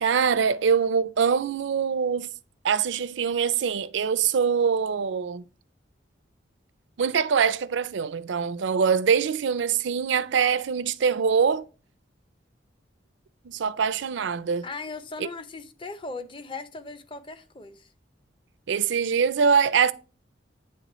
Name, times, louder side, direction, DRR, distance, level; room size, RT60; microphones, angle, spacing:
voice 1, 0.0-2.3 2.6-5.4 7.0-11.6 13.4-14.6 18.7-19.9, right 6 dB, 70° right, 0.4 m, -23 dB
voice 2, 14.6-17.9, left 3 dB, 25° left, 0.6 m, -38 dB
9.5 x 3.2 x 4.1 m
head